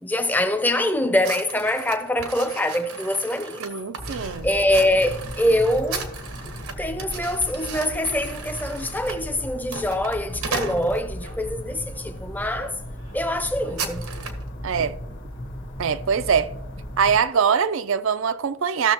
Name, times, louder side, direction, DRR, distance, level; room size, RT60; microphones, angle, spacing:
voice 1, 0.0-3.6 4.4-6.1 6.8-12.8 13.1-14.1, left 1 dB, 10° left, 0.5 m, -24 dB
sound 1, 1.2-11.4 12.0-12.2 12.6-12.7 13.0-14.5, right 5 dB, 85° right, 1.1 m, -36 dB
voice 2, 3.6-4.5 14.6-15.0 15.8-16.5 17.0-18.9, right 7 dB, 65° right, 0.4 m, -22 dB
sound 2, 4.0-17.2, equal, 55° left, 1.1 m, -36 dB
15.0 x 6.6 x 2.9 m
head